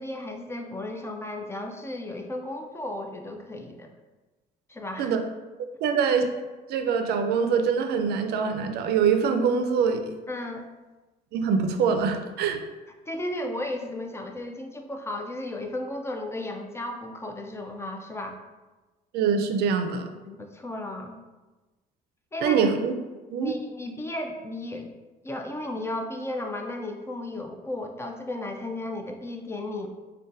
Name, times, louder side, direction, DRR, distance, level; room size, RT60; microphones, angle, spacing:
voice 1, 0.0-3.9 4.7-5.1 10.3-10.7 13.1-18.4 20.3-21.2 22.3-22.7 23.4-24.9 25.2-29.9, left 1 dB, 15° left, 3 dB, 0.3 m, -34 dB
voice 2, 5.8-6.3 6.7-10.0 11.3-12.6 19.1-20.1 22.4-22.9 23.3-23.5, right 6 dB, 70° right, 7 dB, 0.4 m, -24 dB
5.1 x 2.2 x 2.5 m, 1.2 s
cardioid pair, 110°, 17 cm